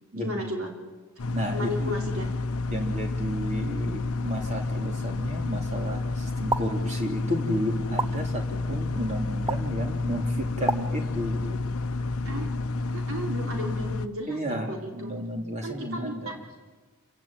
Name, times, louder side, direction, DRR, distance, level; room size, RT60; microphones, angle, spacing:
voice 1, 0.1-0.7 1.4-2.3 12.2-12.5 12.9-15.1 15.6-16.2, equal, 65° right, 2 dB, 3.9 m, -34 dB
sound 1, 1.2-14.1, left 3 dB, 70° left, 0.8 m, -30 dB
voice 2, 1.3-2.0 2.7-11.6 14.3-16.4, equal, 35° right, 3 dB, 3.4 m, -32 dB
sound 2, 6.5-6.6 8.0-8.1 9.5-9.6 10.7-10.8, right 2 dB, 15° right, 0.6 m, -26 dB
28.0 x 16.5 x 9.0 m, 1.3 s
head